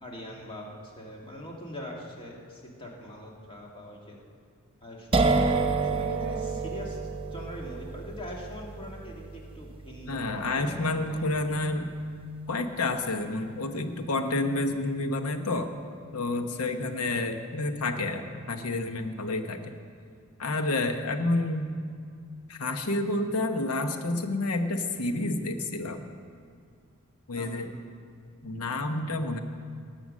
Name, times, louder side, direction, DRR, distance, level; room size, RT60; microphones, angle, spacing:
voice 1, 0.0-4.2 4.8-5.4 5.8-7.0 7.3-11.3 16.4-16.8 27.3-27.8, left 1 dB, 25° left, -1 dB, 1.9 m, -42 dB
sound 1, 5.1-12.7, right 3 dB, 25° right, 0.7 m, -30 dB
voice 2, 10.1-11.9 12.5-15.7 16.1-19.6 20.4-21.7 22.5-26.1 27.3-27.7 28.4-29.4, left 2 dB, 80° left, 7 dB, 1.0 m, -29 dB
18.5 x 7.0 x 6.3 m, 2.3 s
head